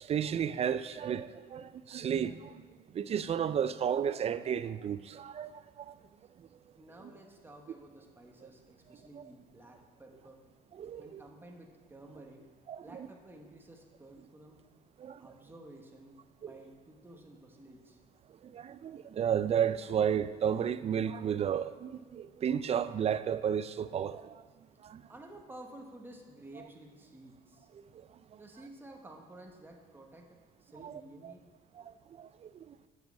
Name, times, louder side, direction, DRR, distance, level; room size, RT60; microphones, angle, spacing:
voice 1, 0.0-2.6 2.9-6.0 9.2-9.3 10.8-11.2 12.7-13.1 15.0-15.2 16.4-16.5 18.4-24.4 24.8-25.1 27.9-28.4 30.8-31.3 31.8-32.8, right 8 dB, 35° right, 0.4 m, -33 dB
voice 2, 6.8-10.4 11.0-12.4 12.8-14.6 15.2-18.0 25.1-27.7 28.4-31.4, right 1 dB, 10° right, 1.4 m, -52 dB
7.7 x 7.5 x 6.4 m
cardioid pair, 110°, 17 cm